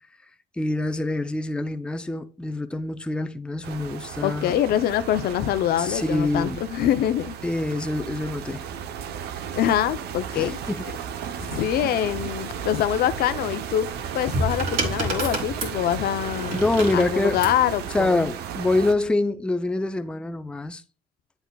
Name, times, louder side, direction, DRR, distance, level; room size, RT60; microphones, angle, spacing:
voice 1, 0.6-4.5 5.8-6.6 7.4-8.7 10.3-10.8 16.5-17.4 17.9-20.8, left 2 dB, 5° left, 0.5 m, -25 dB
sound 1, 3.6-18.9, right 8 dB, 75° right, 0.8 m, -35 dB
voice 2, 4.2-7.4 9.5-10.6 11.4-13.9 14.1-18.3, left 11 dB, 65° left, 0.6 m, -24 dB
sound 2, 13.9-17.6 18.7-19.0, right 1 dB, 55° right, 3.1 m, -29 dB
8.0 x 7.9 x 2.3 m
cardioid pair, 110°, 17 cm